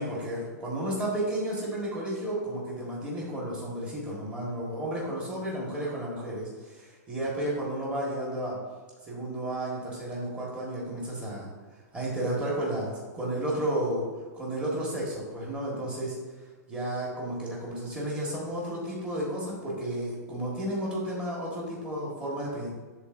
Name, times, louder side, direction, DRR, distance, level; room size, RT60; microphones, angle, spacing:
voice 1, 0.0-8.6 9.1-11.5 11.9-14.1 14.3-16.2 16.7-22.7, right 1 dB, 10° right, -5 dB, 1.6 m, -32 dB
11.0 x 3.9 x 2.6 m, 1.4 s
hypercardioid pair, 160°, 9 cm